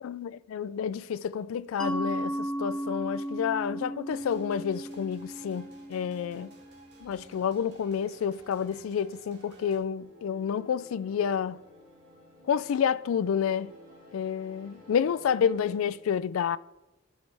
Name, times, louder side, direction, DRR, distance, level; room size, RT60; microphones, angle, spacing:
voice 1, 0.0-6.5 7.0-11.6 12.5-13.7 14.1-16.6, left 7 dB, 85° left, 0.3 m, -29 dB
Mallet percussion, 1.8-7.2, right 1 dB, 5° left, 0.6 m, -35 dB
sound 1, 4.1-9.8, right 2 dB, 55° right, 1.7 m, -55 dB
sound 2, 9.6-16.0, equal, 85° right, 2.8 m, -54 dB
10.5 x 6.3 x 3.4 m
head